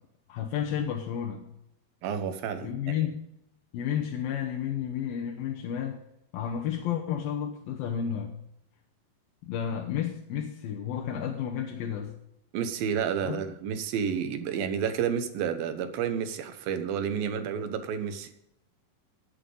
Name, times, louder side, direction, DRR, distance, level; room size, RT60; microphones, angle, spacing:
voice 1, 0.3-1.5 2.6-3.2 3.7-6.0 6.3-8.3 9.4-12.1 13.2-13.4, left 9 dB, 75° left, 1 dB, 2.8 m, -31 dB
voice 2, 2.0-3.0 12.5-18.3, right 7 dB, 75° right, 8 dB, 2.8 m, -30 dB
18.0 x 8.3 x 3.9 m, 0.80 s
omnidirectional pair, 4.4 m